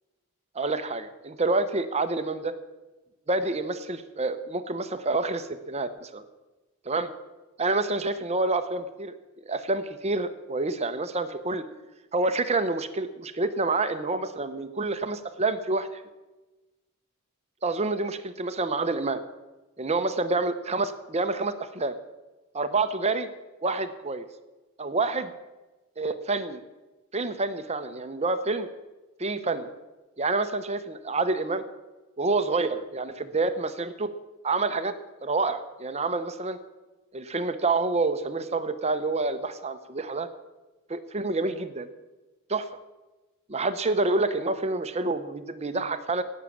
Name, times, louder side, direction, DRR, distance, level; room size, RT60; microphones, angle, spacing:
voice 1, 0.5-2.5 3.3-6.2 6.9-7.1 7.6-9.1 9.4-11.6 12.1-16.0 17.6-19.2 19.8-21.9 22.5-23.3 23.6-24.3 24.8-25.3 26.0-26.6 27.1-28.7 29.2-29.7 30.2-31.6 32.2-34.1 34.4-34.9 35.2-36.6 37.1-40.3 40.9-41.9 42.5-42.7 43.5-46.2, right 3 dB, 30° right, 10 dB, 0.8 m, -28 dB
17.5 x 6.5 x 8.6 m, 1.2 s
head